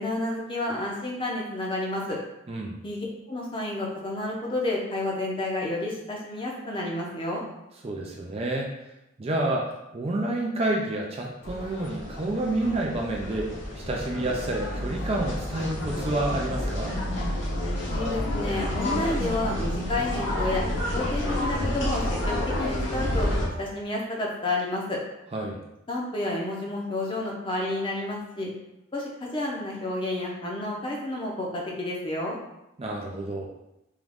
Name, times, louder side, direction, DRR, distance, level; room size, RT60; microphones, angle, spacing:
voice 1, 0.0-2.2 2.8-7.4 17.9-20.6 20.9-23.3 23.6-25.0 25.9-28.5 28.9-32.4, left 2 dB, 25° left, -2 dB, 0.7 m, -30 dB
voice 2, 2.5-2.8 7.8-8.7 9.2-17.0 25.3-25.6 32.8-33.5, right 2 dB, 30° right, 0 dB, 0.4 m, -29 dB
sound 1, 11.4-23.5, left 1 dB, 60° left, 1.0 m, -29 dB
3.6 x 3.0 x 3.5 m, 0.89 s
head